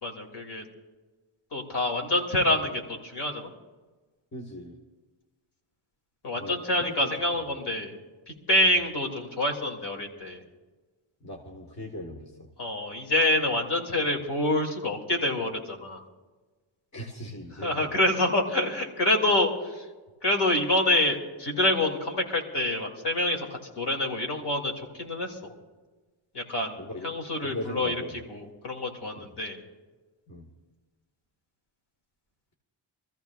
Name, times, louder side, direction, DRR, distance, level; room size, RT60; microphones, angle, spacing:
voice 1, 0.0-0.6 1.5-3.5 6.2-8.0 8.5-10.4 12.6-16.0 17.6-19.8 20.2-23.5 23.8-25.5 26.3-28.0 28.3-29.6, left 1 dB, 55° left, 0 dB, 2.5 m, -27 dB
voice 2, 4.3-4.8 6.3-7.1 11.2-12.5 16.9-17.9 26.8-27.1 27.4-28.2 29.2-29.3 30.3-30.5, left 1 dB, 35° left, -1 dB, 1.4 m, -39 dB
25.0 x 14.5 x 2.4 m, 1.3 s
wide cardioid pair, 150°, 50 cm